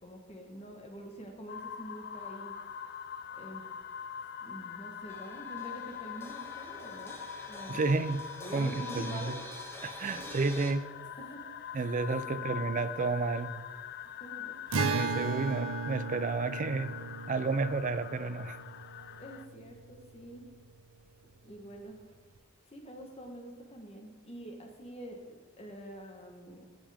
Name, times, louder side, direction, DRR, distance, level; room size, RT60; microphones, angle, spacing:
voice 1, 0.0-2.6 3.3-3.7 4.4-7.2 7.5-7.8 8.4-9.4 10.1-10.4 11.2-11.5 12.2-12.7 14.2-14.6 19.1-20.5 21.4-22.0 22.7-26.6, right 1 dB, 30° left, 2 dB, 1.2 m, -46 dB
sound 1, 1.5-19.5, left 9 dB, 50° left, 0.4 m, -43 dB
sound 2, 5.1-10.7, left 1 dB, 10° left, 0.9 m, -47 dB
voice 2, 7.7-8.2 8.5-9.3 9.8-10.8 11.7-13.6 14.8-16.9 17.3-18.6, right 3 dB, 40° right, 12 dB, 0.4 m, -31 dB
Acoustic guitar, 14.7-20.2, right 4 dB, 85° right, 0.6 m, -36 dB
12.0 x 5.5 x 3.5 m, 1.4 s
head